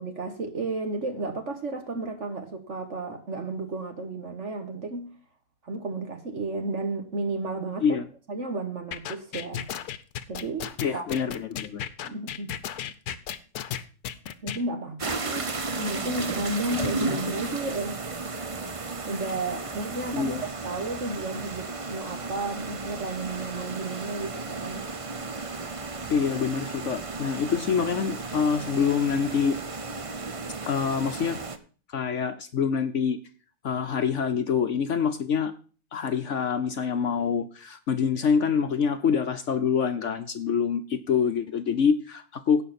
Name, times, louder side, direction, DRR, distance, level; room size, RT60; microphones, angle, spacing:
voice 1, 0.0-5.1 5.6-8.0 8.3-9.7 10.3-11.0 12.0-12.5 14.4-15.5 15.8-18.0 19.1-24.8, right 2 dB, 50° right, 1.6 m, -33 dB
sound 1, 8.9-14.6, left 9 dB, 85° left, 1.3 m, -34 dB
voice 2, 10.8-11.8 20.1-20.4 26.1-29.6 30.7-31.4 31.9-33.2 33.6-35.5 35.9-42.6, left 6 dB, 60° left, 1.0 m, -26 dB
sound 2, 15.0-31.6, right 3 dB, 30° right, 0.7 m, -34 dB
17.0 x 5.7 x 4.1 m
omnidirectional pair, 1.6 m